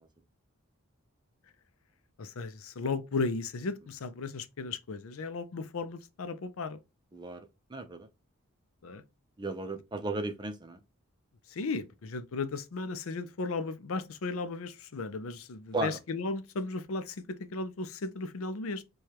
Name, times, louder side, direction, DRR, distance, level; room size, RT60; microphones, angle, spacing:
voice 1, 2.2-6.8 8.8-9.0 11.5-18.8, left 3 dB, 70° left, 0.5 m, -35 dB
voice 2, 7.1-8.1 9.4-10.8 15.7-16.0, right 2 dB, 20° right, 0.4 m, -35 dB
4.8 x 2.3 x 2.8 m
head